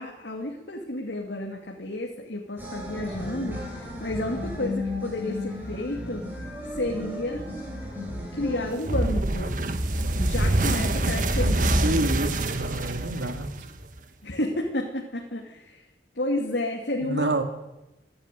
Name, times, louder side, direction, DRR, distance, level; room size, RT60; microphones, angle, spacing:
voice 1, 0.0-7.4 8.3-9.5 10.2-12.0 14.2-15.9 16.1-17.4, left 1 dB, 75° left, 1 dB, 2.7 m, -31 dB
sound 1, 2.6-8.7, left 1 dB, 10° right, 7.6 m, -34 dB
sound 2, 8.8-14.0, right 1 dB, 45° right, 1.5 m, -25 dB
voice 2, 11.8-13.5 17.0-17.4, right 2 dB, 80° right, 7 dB, 2.4 m, -28 dB
27.0 x 11.5 x 9.4 m, 0.98 s
head